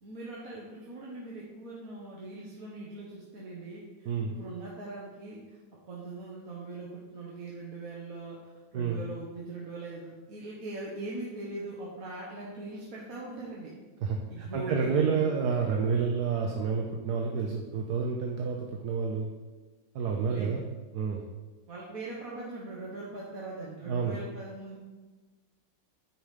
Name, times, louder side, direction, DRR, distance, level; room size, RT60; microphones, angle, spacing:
voice 1, 0.0-5.6 5.9-13.7 14.3-15.3 20.0-20.5 21.7-24.8, right 2 dB, 55° right, -4 dB, 1.5 m, -41 dB
voice 2, 14.0-19.3 19.9-20.6 20.9-21.2 23.9-24.1, right 5 dB, 70° right, 1 dB, 1.3 m, -29 dB
9.2 x 5.0 x 5.1 m, 1.3 s
omnidirectional pair, 1.9 m